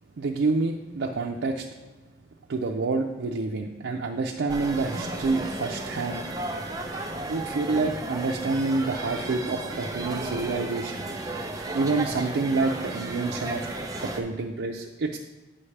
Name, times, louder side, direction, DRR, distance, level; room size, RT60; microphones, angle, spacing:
voice 1, 0.2-1.7 2.5-6.2 7.3-10.9 11.7-13.7 14.0-15.2, right 3 dB, 80° right, 0 dB, 0.5 m, -28 dB
sound 1, 4.5-14.2, right 2 dB, 20° right, 0.6 m, -34 dB
8.5 x 5.5 x 3.3 m, 1.2 s
head